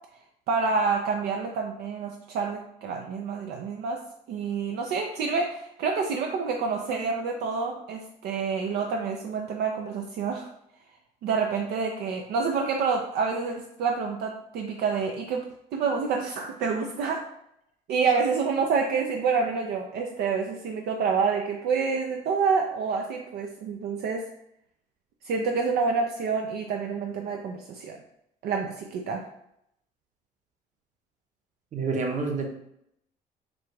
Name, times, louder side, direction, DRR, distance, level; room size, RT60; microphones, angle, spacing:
voice 1, 0.5-4.0 4.3-10.5 11.2-15.4 15.7-17.2 17.9-24.3 25.3-28.0 28.4-29.2, right 5 dB, 70° right, 2 dB, 0.5 m, -28 dB
voice 2, 31.7-32.5, right 4 dB, 45° right, 2 dB, 0.9 m, -28 dB
3.9 x 2.3 x 4.6 m, 0.76 s
cardioid pair, 110°, 17 cm